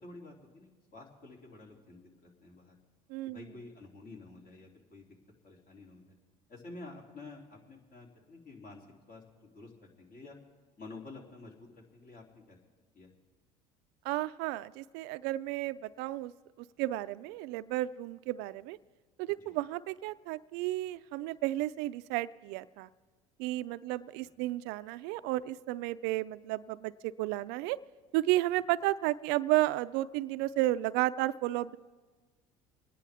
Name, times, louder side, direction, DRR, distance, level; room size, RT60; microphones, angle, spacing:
voice 1, 0.0-2.8 3.2-5.1 5.4-6.1 6.5-10.4 10.8-12.6 12.9-13.1 19.4-19.5, left 3 dB, 50° left, -1 dB, 3.3 m, -50 dB
voice 2, 3.1-3.4 14.0-16.3 16.8-18.8 19.2-22.9 23.4-27.8 28.1-31.8, right 16 dB, 65° right, 15 dB, 0.4 m, -32 dB
26.5 x 10.0 x 3.6 m, 1.4 s
hypercardioid pair, 75°, 19 cm